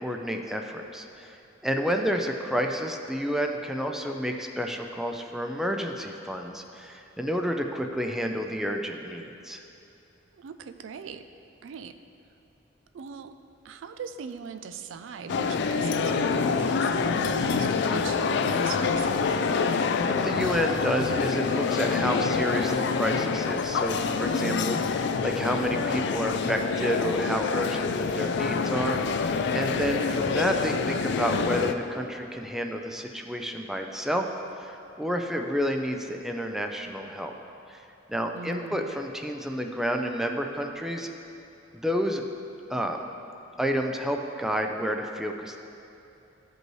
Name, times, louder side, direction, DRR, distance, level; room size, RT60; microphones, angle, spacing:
voice 1, 0.0-9.6 19.6-24.7 25.2-34.3 34.6-37.3 37.7-41.1 41.7-42.2 42.7-43.0 43.6-45.6, equal, ahead, 3 dB, 0.4 m, -30 dB
voice 2, 10.3-11.3 11.6-12.0 12.9-13.3 13.6-19.4 24.4-24.9 29.5-30.2 38.3-39.0, right 5 dB, 85° right, 8 dB, 0.4 m, -40 dB
sound 1, 15.3-31.7, left 5 dB, 65° left, 0.4 m, -26 dB
14.0 x 5.3 x 3.1 m, 2.8 s
head